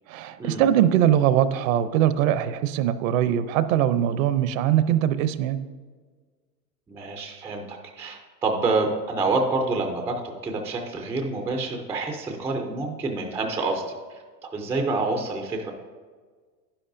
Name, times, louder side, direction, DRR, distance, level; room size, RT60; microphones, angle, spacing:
voice 1, 0.1-5.6, right 11 dB, 55° right, 13 dB, 0.6 m, -22 dB
voice 2, 6.9-13.8 14.1-15.7, right 3 dB, 5° right, 3 dB, 0.3 m, -27 dB
11.0 x 10.0 x 2.6 m, 1.5 s
hypercardioid pair, 115°, 49 cm